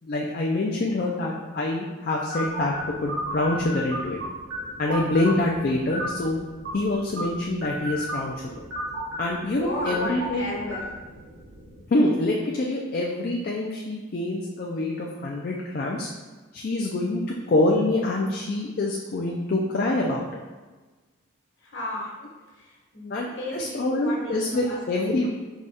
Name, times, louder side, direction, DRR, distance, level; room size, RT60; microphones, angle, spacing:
voice 1, 0.0-4.2 4.8-6.4 6.7-8.4 9.2-10.5 11.9-16.1 16.5-17.2 17.5-20.3 23.1-25.3, left 2 dB, 45° left, -1 dB, 0.4 m, -25 dB
sound 1, 2.3-11.8, equal, 65° right, 1.3 m, -35 dB
voice 2, 9.5-10.9 21.6-22.1 22.5-25.3, left 1 dB, 60° left, -3 dB, 1.2 m, -34 dB
4.8 x 2.3 x 4.0 m, 1.3 s
head